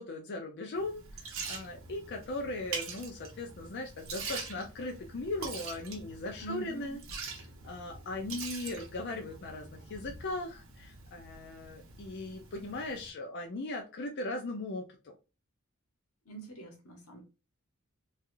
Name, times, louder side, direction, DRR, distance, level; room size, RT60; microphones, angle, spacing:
voice 1, 0.0-7.0 7.6-15.1, left 2 dB, 50° left, 0.5 m, -38 dB
Liquid, 0.8-13.1, right 4 dB, 65° right, 0.8 m, -44 dB
voice 2, 6.4-6.9 16.2-17.2, right 4 dB, 85° left, 1.1 m, -44 dB
3.2 x 2.4 x 2.5 m
head